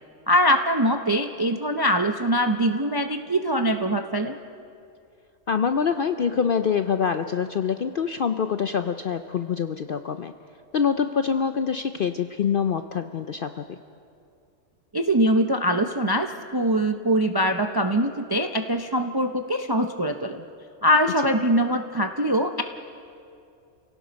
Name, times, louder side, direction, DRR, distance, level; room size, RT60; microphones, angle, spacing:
voice 1, 0.3-4.4 14.9-20.4 20.8-22.6, equal, 35° right, 6 dB, 0.3 m, -23 dB
voice 2, 5.5-10.3 10.7-13.8, left 7 dB, 60° left, 9 dB, 0.5 m, -25 dB
29.0 x 17.5 x 5.2 m, 2.5 s
omnidirectional pair, 1.5 m